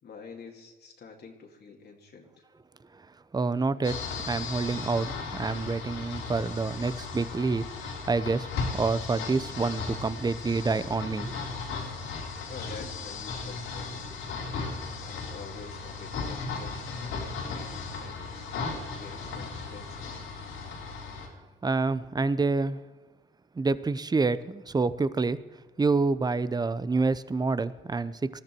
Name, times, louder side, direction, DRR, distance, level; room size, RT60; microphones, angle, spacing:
voice 1, 0.0-2.4 12.5-14.4 15.0-18.5 19.0-20.1, left 5 dB, 55° left, 0 dB, 2.3 m, -48 dB
voice 2, 3.3-11.4 21.6-22.8 23.6-25.4 25.8-28.4, right 3 dB, 20° right, 16 dB, 0.7 m, -28 dB
sound 1, 3.8-21.3, left 4 dB, 85° left, 3.6 m, -36 dB
20.0 x 13.5 x 4.5 m, 1.2 s
cardioid pair, 90°, 20 cm